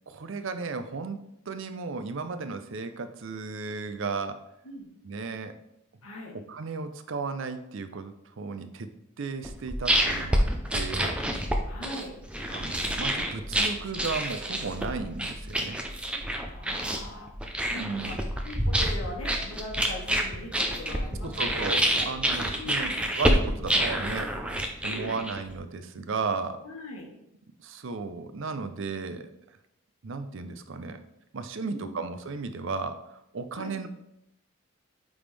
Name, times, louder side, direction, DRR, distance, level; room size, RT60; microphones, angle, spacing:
voice 1, 0.1-4.5 5.0-5.6 6.3-8.9 9.2-10.5 10.7-11.2 12.5-15.8 17.7-18.2 21.2-26.6 27.6-29.3 30.0-31.0 31.3-33.9, right 4 dB, 60° right, 10 dB, 0.5 m, -35 dB
voice 2, 6.0-6.3 11.7-12.1 16.4-17.3 17.7-18.2 18.4-22.1 22.5-23.0 24.8-25.2 26.6-27.1 31.6-31.9 33.6-33.7, left 1 dB, 80° left, -1 dB, 1.6 m, -40 dB
sound 1, 9.4-25.5, right 1 dB, 5° right, 0.5 m, -28 dB
8.8 x 3.6 x 3.3 m, 0.81 s
head